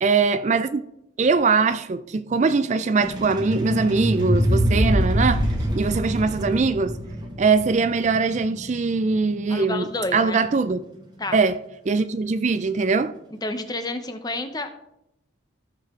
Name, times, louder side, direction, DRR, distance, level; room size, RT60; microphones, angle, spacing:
voice 1, 0.0-0.8 1.2-5.4 5.7-6.9 7.4-10.8 11.3-11.6 11.9-13.1, right 4 dB, 35° right, 0.4 m, -21 dB
sound 1, 3.0-13.7, right 1 dB, 20° right, 1.4 m, -40 dB
sound 2, 3.1-8.2, equal, 65° right, 1.7 m, -24 dB
voice 2, 9.5-10.4 11.2-11.4 13.4-14.7, left 2 dB, 20° left, 0.8 m, -30 dB
14.5 x 6.6 x 3.7 m
head